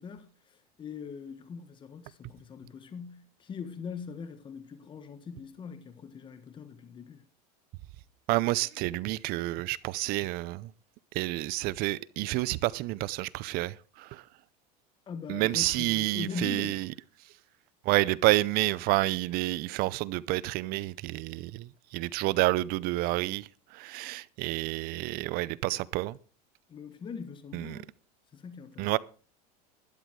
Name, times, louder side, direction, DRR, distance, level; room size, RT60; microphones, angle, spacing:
voice 1, 0.0-7.2 15.1-16.9 26.7-27.9 28.3-29.0, left 6 dB, 25° left, 1.5 m, -41 dB
voice 2, 8.3-10.7 11.1-14.2 15.3-16.9 17.8-26.2 27.5-27.8 28.8-29.0, right 19 dB, 50° right, 0.6 m, -29 dB
12.0 x 11.0 x 4.7 m
supercardioid pair, 130°, 20 cm